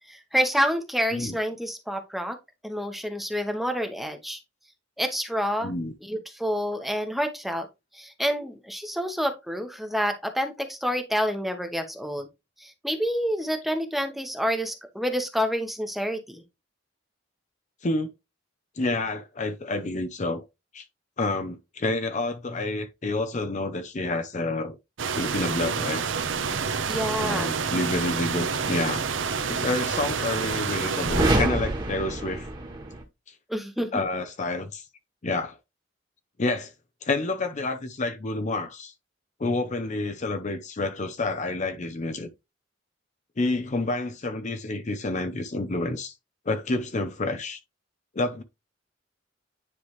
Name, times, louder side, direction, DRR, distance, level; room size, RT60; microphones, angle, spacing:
voice 1, 0.1-2.4 2.6-4.4 5.0-5.7 6.0-7.7 7.9-12.3 12.6-16.4 26.9-27.5 33.5-34.0, equal, ahead, 0.9 m, -28 dB
voice 2, 5.6-5.9 17.8-18.1 18.8-20.5 20.7-20.8 21.2-24.8 25.2-26.0 27.2-29.0 29.5-32.5 33.9-34.8 35.2-35.6 36.4-36.7 37.0-38.9 39.4-42.3 43.4-46.1 46.5-47.6 48.1-48.4, left 2 dB, 40° left, 0.6 m, -29 dB
sound 1, 25.0-31.3, right 5 dB, 75° right, 0.7 m, -28 dB
sound 2, 31.0-33.0, right 1 dB, 25° right, 1.5 m, -26 dB
9.8 x 3.3 x 3.1 m
head